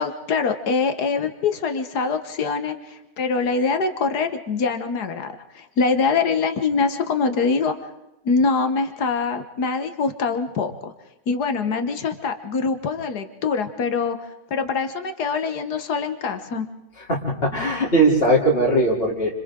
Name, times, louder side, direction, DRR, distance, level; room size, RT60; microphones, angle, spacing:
voice 1, 0.0-7.8 8.2-10.9 11.3-16.7, left 4 dB, 70° left, 8 dB, 1.8 m, -24 dB
voice 2, 17.1-19.4, right 1 dB, 35° left, -3 dB, 3.6 m, -19 dB
29.5 x 26.5 x 3.8 m, 0.92 s
omnidirectional pair, 1.8 m